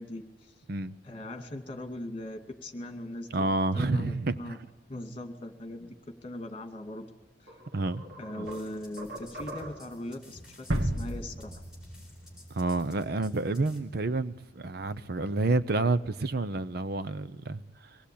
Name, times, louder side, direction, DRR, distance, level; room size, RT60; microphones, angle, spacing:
voice 1, 0.0-0.5 1.0-3.5 3.7-4.6 4.9-5.9 6.2-7.1 7.4-7.6 8.2-11.5, left 1 dB, 30° left, 2.3 m, -40 dB
voice 2, 3.3-4.6 7.7-8.1 8.4-8.5 12.5-18.0, right 2 dB, 55° right, 0.7 m, -29 dB
sound 1, 6.9-7.0 7.5-10.0, right 1 dB, 70° right, 4.6 m, -44 dB
sound 2, 8.4-13.8, left 1 dB, 5° right, 4.4 m, -53 dB
sound 3, 10.7-13.5, right 1 dB, 90° right, 2.0 m, -33 dB
23.5 x 19.0 x 8.6 m
head